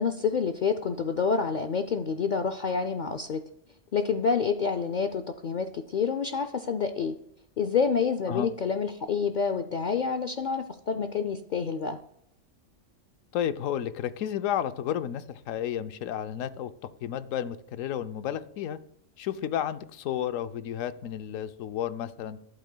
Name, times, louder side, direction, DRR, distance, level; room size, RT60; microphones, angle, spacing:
voice 1, 0.0-3.4 3.9-7.1 7.6-12.0, left 5 dB, 65° left, 8 dB, 0.4 m, -28 dB
voice 2, 13.3-16.7 17.0-18.8 19.2-22.4, left 10 dB, 85° left, 12 dB, 1.0 m, -32 dB
11.5 x 8.3 x 2.2 m, 0.74 s
omnidirectional pair, 1.3 m